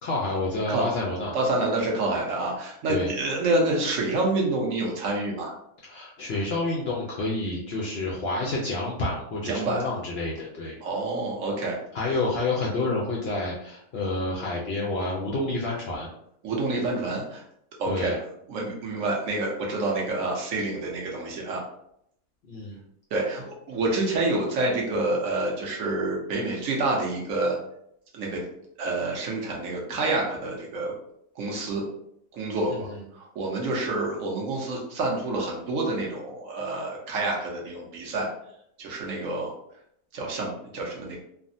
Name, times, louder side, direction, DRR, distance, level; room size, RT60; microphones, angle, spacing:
voice 1, 0.0-1.3 2.9-3.1 5.8-10.8 11.9-16.1 17.9-18.1 22.5-22.8 32.7-33.0, left 2 dB, 75° left, -3 dB, 0.5 m, -29 dB
voice 2, 1.3-5.5 9.4-9.8 10.8-11.8 16.4-17.4 17.8-18.2 18.5-21.6 23.1-27.6 28.1-28.4 28.8-30.9 31.4-31.8 32.3-32.9 33.1-38.3 38.8-39.5 40.1-41.2, right 2 dB, 65° right, -1 dB, 1.1 m, -28 dB
3.4 x 2.1 x 2.6 m, 0.73 s
omnidirectional pair, 1.6 m